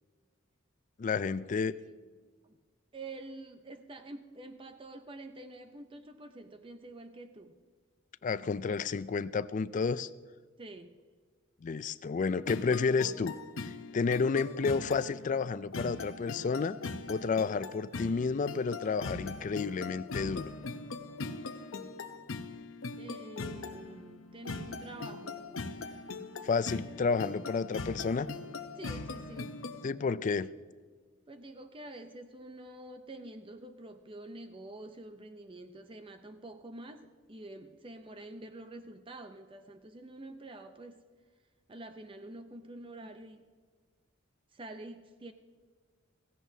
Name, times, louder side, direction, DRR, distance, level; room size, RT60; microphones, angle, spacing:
voice 1, 1.0-1.8 8.2-10.1 11.6-13.4 13.6-16.8 17.1-20.5 26.4-28.3 29.8-30.5, left 5 dB, 40° left, 16 dB, 0.3 m, -31 dB
voice 2, 1.6-1.9 2.4-2.6 2.9-7.6 10.6-11.0 23.0-25.5 28.8-29.5 31.3-41.0 41.7-43.4 44.5-45.3, right 2 dB, 25° right, 8 dB, 0.5 m, -47 dB
sound 1, 12.5-29.9, left 3 dB, 80° left, 0.7 m, -41 dB
16.5 x 16.0 x 2.7 m, 1.5 s
head